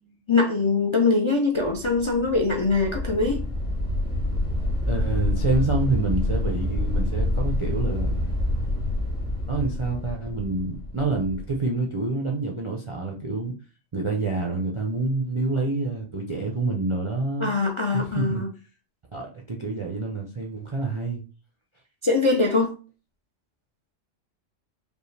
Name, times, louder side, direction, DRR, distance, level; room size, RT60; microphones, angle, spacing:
voice 1, 0.3-3.4 17.4-18.5 22.0-22.7, left 3 dB, 45° left, 2 dB, 0.3 m, -22 dB
sound 1, 1.6-11.5, left 1 dB, 30° left, 1.1 m, -27 dB
voice 2, 4.9-8.2 9.5-13.5 13.9-17.5 17.9-18.4 19.1-21.2, right 3 dB, 45° right, -1 dB, 0.4 m, -27 dB
5.2 x 2.3 x 3.2 m, 0.35 s
omnidirectional pair, 1.3 m